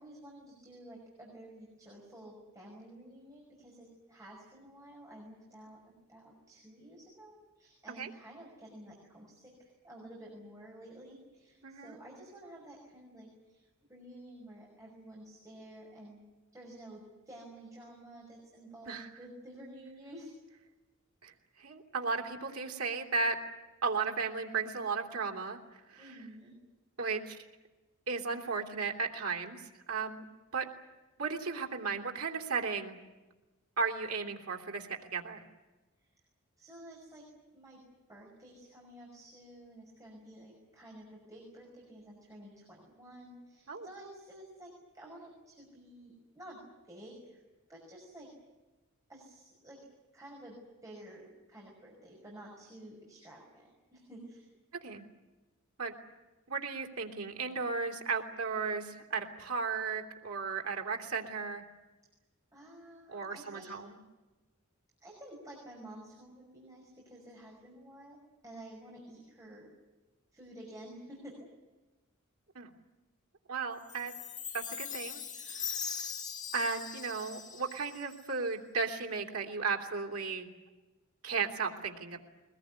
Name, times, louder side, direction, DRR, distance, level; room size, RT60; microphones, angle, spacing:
voice 1, 0.0-5.8 6.1-13.6 13.9-16.2 16.5-20.3 26.0-26.5 36.0-36.1 36.6-37.2 37.5-37.8 38.1-46.6 46.8-47.4 47.7-48.3 49.1-49.8 50.1-50.6 50.8-54.5 62.5-63.7 65.0-69.7 70.3-71.4, right 1 dB, 15° right, -3 dB, 5.8 m, -51 dB
voice 2, 11.6-11.9 18.9-19.1 21.2-21.3 21.6-23.4 23.8-26.0 27.0-27.4 28.1-29.6 29.9-30.2 30.5-30.7 31.2-33.0 33.8-35.4 43.7-43.9 54.8-55.0 55.8-55.9 56.5-61.6 63.1-64.0 72.5-72.7 73.5-74.1 74.5-75.2 75.5-76.1 76.5-80.5 81.2-82.2, right 4 dB, 90° right, 2 dB, 3.0 m, -35 dB
Chime, 73.9-78.4, left 7 dB, 35° left, 1.7 m, -41 dB
22.0 x 20.5 x 9.6 m, 1.2 s
head